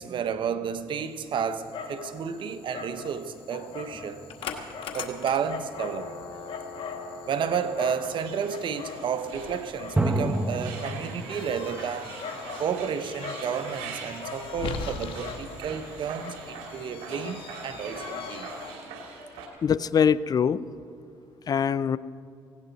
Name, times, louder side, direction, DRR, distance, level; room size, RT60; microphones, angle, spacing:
voice 1, 0.0-4.2 4.9-6.1 7.3-12.1 12.6-18.5, right 7 dB, 60° right, 1.0 m, -31 dB
Dog, 1.0-18.7, left 5 dB, 70° left, 1.6 m, -40 dB
sound 1, 3.9-5.3 10.0-11.8, right 2 dB, 15° right, 1.6 m, -30 dB
sound 2, 8.0-19.5, right 4 dB, 90° right, 2.6 m, -43 dB
voice 2, 19.6-20.6 21.5-22.0, left 7 dB, 45° left, 0.5 m, -23 dB
18.5 x 17.0 x 4.1 m
supercardioid pair, 80°, 9 cm